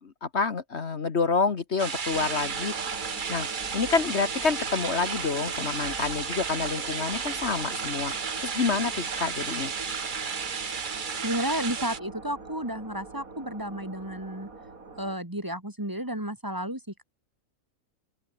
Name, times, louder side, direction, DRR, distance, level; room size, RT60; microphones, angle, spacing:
voice 1, 0.0-2.9 3.3-3.5 3.7-8.1 8.4-9.7, left 4 dB, 55° left, 1.6 m, -28 dB
sound 1, 1.8-12.0, right 6 dB, 40° right, 1.1 m, -33 dB
sound 2, 2.1-15.2, right 3 dB, 85° right, 3.9 m, -42 dB
voice 2, 11.2-14.5 15.0-17.0, right 1 dB, 15° right, 2.6 m, -32 dB
open air
omnidirectional pair, 1.4 m